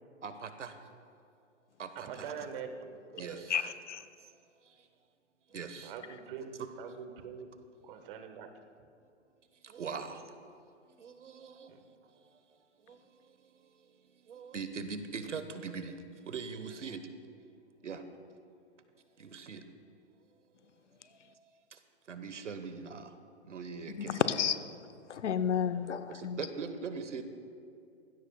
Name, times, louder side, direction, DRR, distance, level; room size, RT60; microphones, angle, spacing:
voice 1, 0.2-0.7 1.8-2.3 3.2-3.7 5.5-5.9 9.6-10.3 11.0-11.8 12.9-13.0 14.3-16.0 16.3-17.0 17.8-18.0 19.2-19.6 22.1-23.1 23.4-24.2 26.1-27.2, right 5 dB, 85° right, 9 dB, 1.2 m, -41 dB
voice 2, 1.9-3.5 5.8-7.5 7.8-8.5 8.8-8.9 11.7-11.8 25.5-25.9, right 6 dB, 45° right, 7 dB, 1.4 m, -44 dB
voice 3, 3.5-4.0 24.0-24.6 25.1-26.4, left 8 dB, 75° left, 12 dB, 0.9 m, -31 dB
19.0 x 16.0 x 2.3 m, 2.5 s
hypercardioid pair, 125°, 36 cm